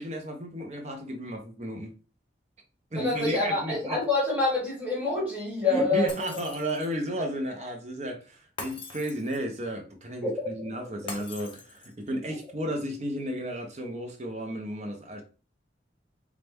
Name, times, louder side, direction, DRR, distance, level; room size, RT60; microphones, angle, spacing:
voice 1, 0.0-1.9 2.9-4.0 5.7-15.2, equal, 40° right, 0.7 m, -33 dB
voice 2, 3.0-6.3 10.2-10.5, left 3 dB, 10° right, 1.7 m, -27 dB
Shatter, 6.1-7.0 8.6-9.6 11.1-12.1, left 3 dB, 30° left, 0.7 m, -42 dB
4.2 x 2.4 x 3.4 m
head